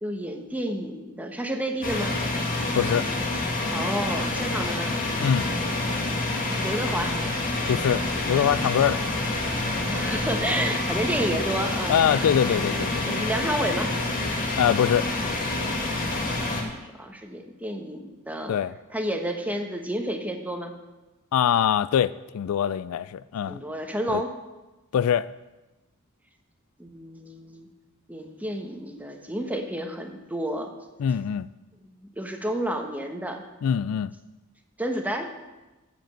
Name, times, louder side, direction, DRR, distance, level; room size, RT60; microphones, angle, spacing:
voice 1, 0.0-2.1 3.7-4.9 6.5-7.2 9.6-13.9 16.1-16.5 16.8-18.6 18.9-20.7 23.5-24.3 26.8-27.7 28.1-30.7 31.8-33.4 34.8-35.3, right 1 dB, 5° right, 1.1 m, -31 dB
sound 1, 1.8-16.6, left 2 dB, 40° left, 1.9 m, -27 dB
voice 2, 2.7-3.1 5.2-5.5 7.7-9.2 11.9-13.2 14.6-15.1 18.5-18.7 21.3-23.6 24.1-24.2 24.9-25.3 31.0-31.5 33.6-34.1, left 8 dB, 75° left, 0.3 m, -23 dB
14.0 x 5.2 x 7.6 m
head